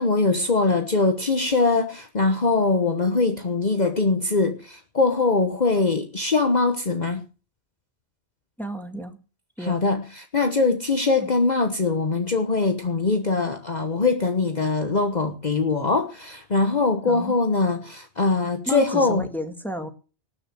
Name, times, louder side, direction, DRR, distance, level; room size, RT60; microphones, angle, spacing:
voice 1, 0.0-7.2 9.6-19.2, left 3 dB, 40° left, 1.3 m, -22 dB
voice 2, 8.6-9.2 9.6-9.8 11.2-11.3 17.1-17.3 18.7-19.9, equal, ahead, 1.9 m, -32 dB
19.0 x 6.6 x 7.5 m
omnidirectional pair, 1.1 m